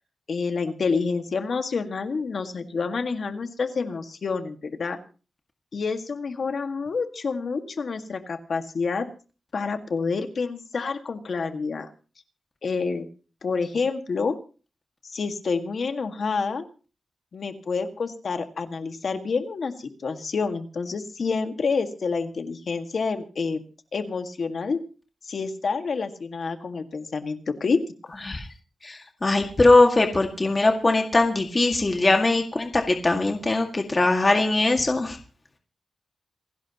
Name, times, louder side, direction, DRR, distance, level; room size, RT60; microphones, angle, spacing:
voice 1, 0.3-5.0 5.7-9.1 9.5-11.9 12.6-13.1 13.4-14.3 15.1-16.6 17.3-23.6 23.9-24.8 25.2-27.8, left 4 dB, 60° left, 7 dB, 1.8 m, -28 dB
voice 2, 28.8-35.2, left 2 dB, 30° left, 3 dB, 2.0 m, -21 dB
27.5 x 11.5 x 3.0 m, 0.36 s
wide cardioid pair, 115°, 0 cm